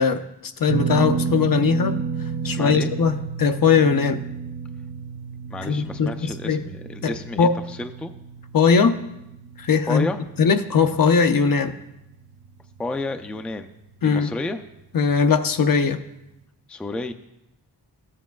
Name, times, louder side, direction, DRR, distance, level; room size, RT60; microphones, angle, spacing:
voice 1, 0.0-2.0 2.4-4.2 5.6-6.6 7.0-7.1 7.4-7.5 8.5-9.0 9.6-10.1 10.4-11.8 14.0-14.3 14.9-16.0, left 5 dB, 55° left, 8 dB, 0.6 m, -20 dB
sound 1, 0.7-12.9 13.2-13.4 15.1-15.2, right 6 dB, 65° right, 0.6 m, -32 dB
voice 2, 2.4-2.9 5.5-8.1 9.9-10.2 12.8-13.7 14.0-14.6 16.7-17.1, left 2 dB, 5° left, 7 dB, 0.4 m, -31 dB
14.0 x 7.5 x 2.3 m, 0.89 s
cardioid pair, 70°, 41 cm